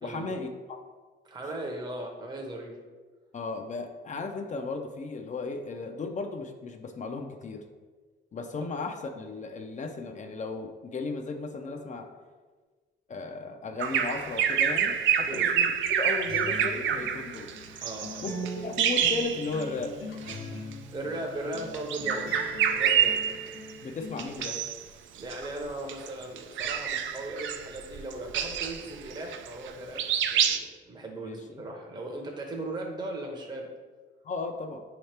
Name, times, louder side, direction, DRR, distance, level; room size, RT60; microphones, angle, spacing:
voice 1, 0.0-0.8 3.3-7.6 8.3-12.1 13.1-17.5 18.2-18.3 18.6-19.9 23.8-24.6 31.2-31.4 34.2-34.8, left 3 dB, 40° left, 5 dB, 0.5 m, -35 dB
voice 2, 1.2-2.8 8.6-8.7 15.2-15.5 17.8-18.2 20.9-22.3 22.7-23.3 25.1-30.0 30.3-33.7, right 1 dB, 20° right, 1 dB, 0.7 m, -38 dB
Bird vocalization bird call bird song, 13.8-19.9 20.2-20.4 21.4-23.7 24.2-24.8 25.2-29.7 30.0-30.6, right 8 dB, 70° right, 0.4 m, -27 dB
Acoustic guitar, 16.3-24.3, left 1 dB, 90° left, 0.9 m, -41 dB
5.5 x 2.9 x 3.3 m, 1.4 s
cardioid pair, 90°, 20 cm